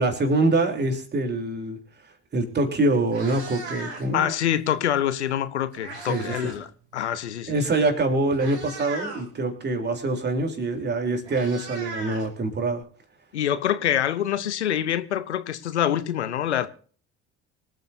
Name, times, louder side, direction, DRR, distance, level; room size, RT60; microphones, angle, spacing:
voice 1, 0.0-1.8 2.3-4.3 6.1-6.4 7.5-12.8, right 2 dB, 30° right, 3.5 m, -24 dB
Meow, 2.5-2.6 3.0-4.2 5.3-6.6 6.9-7.2 7.9-8.0 8.3-9.3 10.6-10.7 10.9-12.8, right 2 dB, 75° right, 5.1 m, -38 dB
voice 2, 4.1-6.7 6.9-7.6 13.3-16.7, left 10 dB, 75° left, 0.9 m, -25 dB
25.0 x 9.1 x 2.7 m
figure-of-eight pair, 60°, 34 cm